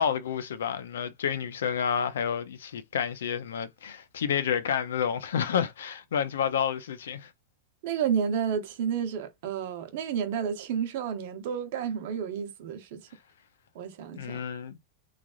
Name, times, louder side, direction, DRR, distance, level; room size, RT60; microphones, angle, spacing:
voice 1, 0.0-7.3 14.1-14.8, left 8 dB, 90° left, 0.4 m, -29 dB
voice 2, 7.8-13.1 13.7-14.4, right 7 dB, 60° right, 0.8 m, -31 dB
3.3 x 2.4 x 2.4 m
supercardioid pair, 135°, 0 cm